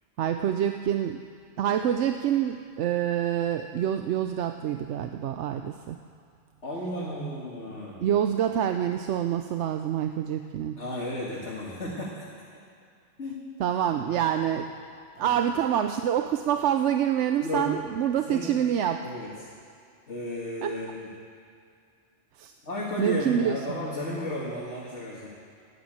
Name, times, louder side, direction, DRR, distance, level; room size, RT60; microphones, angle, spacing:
voice 1, 0.2-1.2 1.6-6.0 8.0-10.8 13.6-14.7 15.2-19.0 20.6-20.7 22.4-22.5 23.0-23.6, right 10 dB, 85° right, 7 dB, 0.9 m, -26 dB
voice 2, 6.6-8.0 10.8-12.2 12.5-12.6 13.2-13.4 14.0-14.3 15.2-15.4 17.4-17.7 18.3-18.6 19.0-19.3 20.1-21.1 22.6-25.3, left 1 dB, 85° left, -6 dB, 2.2 m, -34 dB
11.5 x 10.0 x 8.8 m, 2.3 s
omnidirectional pair, 1.2 m